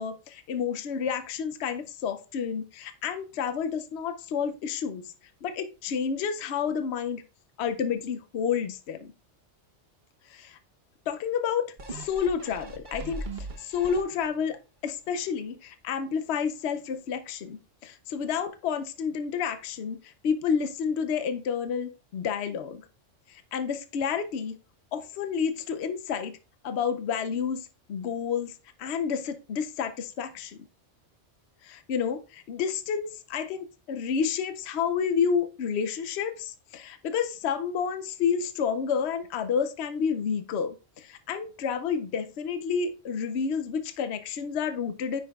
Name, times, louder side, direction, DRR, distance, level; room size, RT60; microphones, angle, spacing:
voice 1, 0.0-5.1 5.4-7.2 7.6-9.1 10.3-10.6 11.1-13.2 13.6-14.6 14.8-22.8 23.3-24.6 24.9-26.4 26.6-30.6 31.6-45.2, left 6 dB, 70° left, 9 dB, 0.9 m, -30 dB
sound 1, 11.8-14.5 15.0-15.1, right 2 dB, 45° right, 1.1 m, -39 dB
9.7 x 5.7 x 2.3 m, 0.31 s
omnidirectional pair, 1.2 m